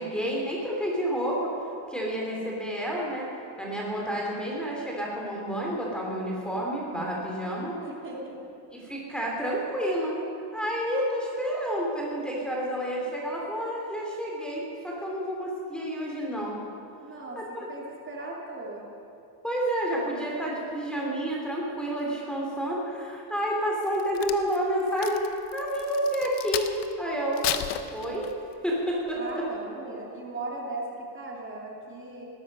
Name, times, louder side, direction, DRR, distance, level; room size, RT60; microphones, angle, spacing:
voice 1, 0.0-1.5 1.9-7.8 8.8-10.1 10.5-16.6 17.3-17.7 19.4-26.7 27.0-27.6 27.9-28.3 28.6-29.5, equal, ahead, -3 dB, 3.2 m, -30 dB
voice 2, 7.8-8.4 17.0-18.9 29.1-32.2, right 2 dB, 30° right, -2 dB, 2.8 m, -38 dB
Crack, 23.8-26.9 27.3-28.5 29.1-29.3, left 12 dB, 80° left, 1.0 m, -34 dB
19.5 x 13.5 x 5.5 m, 2.6 s
cardioid pair, 135°, 41 cm